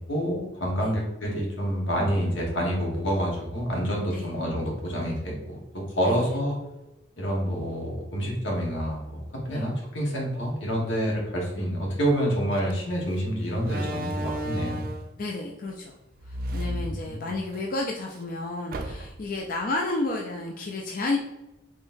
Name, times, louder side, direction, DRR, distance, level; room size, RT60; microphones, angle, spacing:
voice 1, 0.1-6.6 7.2-14.9 16.6-17.3, equal, 90° left, -2 dB, 1.3 m, -28 dB
Slam, 12.5-12.7 13.6-15.2 16.2-17.6 18.0-18.1 18.7-19.3, right 1 dB, 50° right, 0.4 m, -33 dB
voice 2, 15.2-15.9 16.2-21.2, left 2 dB, 50° left, 0 dB, 0.4 m, -31 dB
3.8 x 3.0 x 2.6 m, 0.95 s
head